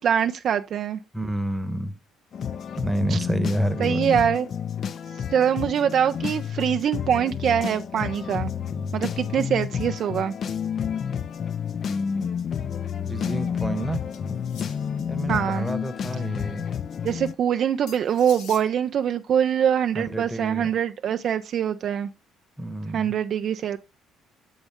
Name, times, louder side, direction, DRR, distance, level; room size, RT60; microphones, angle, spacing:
voice 1, 0.0-1.0 3.1-3.2 3.8-4.5 5.3-8.5 8.9-10.3 15.3-15.7 17.0-22.1 22.9-23.8, right 8 dB, 55° right, 0.4 m, -23 dB
voice 2, 1.1-1.9 2.8-4.1 13.0-14.0 15.1-16.6 19.9-20.7 22.6-23.1, right 1 dB, 5° right, 1.0 m, -29 dB
sound 1, 2.3-17.3, left 7 dB, 50° left, 0.4 m, -30 dB
sound 2, 14.1-15.1 17.9-18.7, left 7 dB, 70° left, 1.0 m, -44 dB
6.9 x 5.4 x 3.5 m
hypercardioid pair, 50°, 0 cm